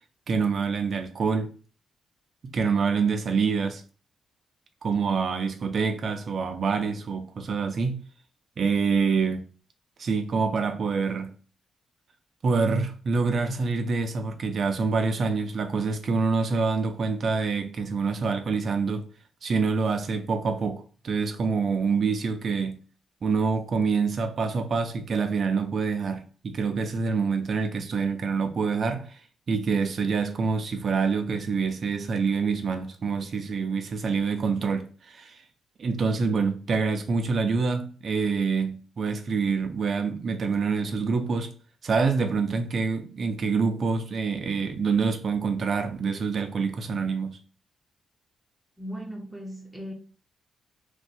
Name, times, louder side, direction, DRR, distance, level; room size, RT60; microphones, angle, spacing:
voice 1, 0.3-1.5 2.4-3.8 4.8-8.0 8.6-9.4 10.0-11.3 12.4-19.1 19.4-22.8 23.2-29.2 29.5-35.4 35.8-41.5 41.8-47.4, right 5 dB, 40° right, 0.4 m, -26 dB
voice 2, 48.8-49.9, equal, ahead, 0.6 m, -37 dB
2.6 x 2.2 x 4.0 m
wide cardioid pair, 170°, 0 cm